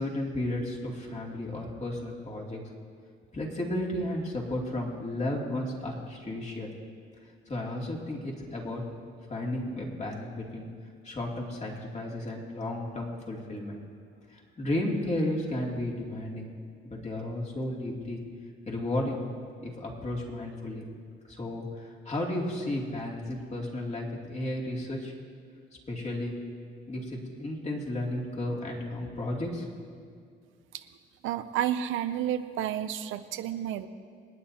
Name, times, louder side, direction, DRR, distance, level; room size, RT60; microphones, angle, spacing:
voice 1, 0.0-2.6 3.3-6.7 7.5-8.8 9.3-10.7 11.0-13.8 14.3-16.5 16.8-18.2 18.7-19.2 19.6-20.9 21.3-25.1 25.9-26.4 26.9-29.9, left 1 dB, 35° left, -2 dB, 2.7 m, -33 dB
voice 2, 31.2-33.9, right 11 dB, 90° right, 10 dB, 0.6 m, -31 dB
27.0 x 9.2 x 2.9 m, 2.2 s
cardioid pair, 90°, 20 cm